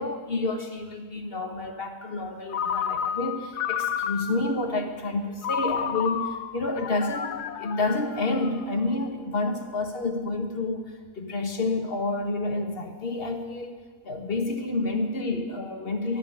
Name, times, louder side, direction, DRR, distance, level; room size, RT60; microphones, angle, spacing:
voice 1, 0.0-16.2, left 2 dB, 35° left, 4 dB, 1.4 m, -29 dB
Ringtone, 2.5-4.6 5.4-8.8, left 8 dB, 70° left, 1.3 m, -31 dB
12.5 x 10.0 x 9.8 m, 1.5 s
omnidirectional pair, 1.8 m